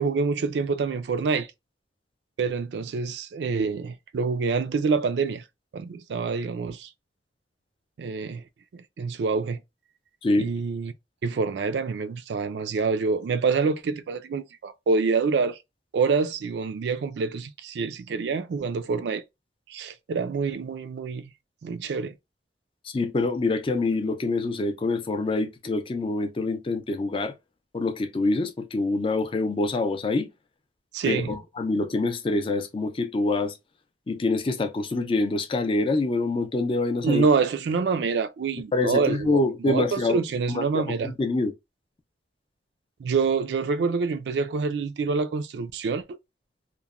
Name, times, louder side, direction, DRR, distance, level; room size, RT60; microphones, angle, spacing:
voice 1, 0.0-1.5 2.4-5.4 5.7-6.9 8.0-8.4 8.7-9.6 10.4-10.9 11.2-15.6 15.9-19.2 19.7-21.3 21.6-22.1 30.9-31.3 37.0-41.1 43.0-46.0, right 4 dB, 75° right, 0.3 m, -26 dB
voice 2, 22.8-27.3 27.7-30.3 31.1-33.5 34.1-37.2 38.7-40.2 40.5-41.5, left 2 dB, 30° left, 0.4 m, -25 dB
2.9 x 2.1 x 2.4 m
head